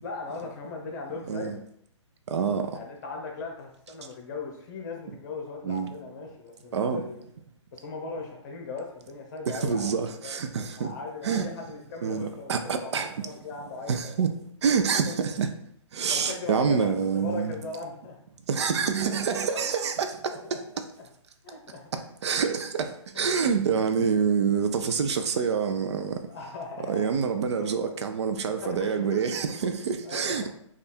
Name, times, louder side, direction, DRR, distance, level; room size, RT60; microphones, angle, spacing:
voice 1, 0.0-1.6 2.7-7.2 7.7-10.4 10.8-12.5 12.8-14.1 15.0-15.1 16.1-18.2 19.1-19.2 20.3-20.6 21.4-21.9 23.1-23.3 26.3-27.1 27.6-27.9 28.4-30.5, left 3 dB, 40° left, 1.0 m, -38 dB
voice 2, 1.3-1.6 2.3-2.8 5.6-5.9 6.7-7.0 9.5-10.9 11.2-11.5 12.0-13.1 13.9-14.3 14.6-15.5 15.9-17.6 18.5-20.4 22.2-26.2 26.9-30.5, right 6 dB, 60° right, 0.5 m, -27 dB
3.3 x 2.5 x 4.2 m
hypercardioid pair, 140°, 16 cm